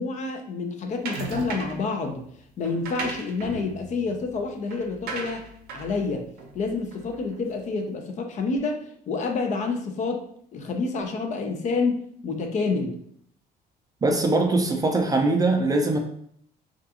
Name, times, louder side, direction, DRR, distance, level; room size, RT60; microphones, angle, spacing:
voice 1, 0.0-2.3 2.6-5.4 5.7-6.3 6.5-10.2 10.5-13.0, left 4 dB, 45° left, 4 dB, 0.5 m, -28 dB
sound 1, 1.1-1.9 2.6-7.3, right 3 dB, 65° right, 0.6 m, -37 dB
voice 2, 14.0-16.0, right 2 dB, 20° right, 3 dB, 0.4 m, -22 dB
2.4 x 2.3 x 2.8 m, 0.65 s
cardioid pair, 110°, 17 cm